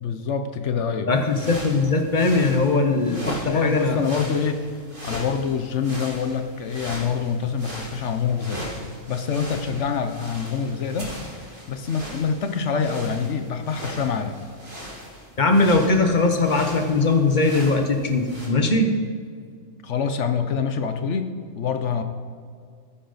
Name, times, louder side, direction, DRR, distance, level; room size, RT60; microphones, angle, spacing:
voice 1, 0.0-1.1 3.3-4.7 5.0-8.7 9.1-11.1 11.7-14.4 19.8-21.3 21.5-22.0, left 6 dB, 65° left, 8 dB, 1.1 m, -25 dB
voice 2, 1.1-4.0 15.4-18.9, left 3 dB, 40° left, 5 dB, 1.2 m, -20 dB
sound 1, 1.2-18.5, equal, 40° right, 2.8 m, -38 dB
14.5 x 9.5 x 4.0 m, 2.1 s
omnidirectional pair, 1.4 m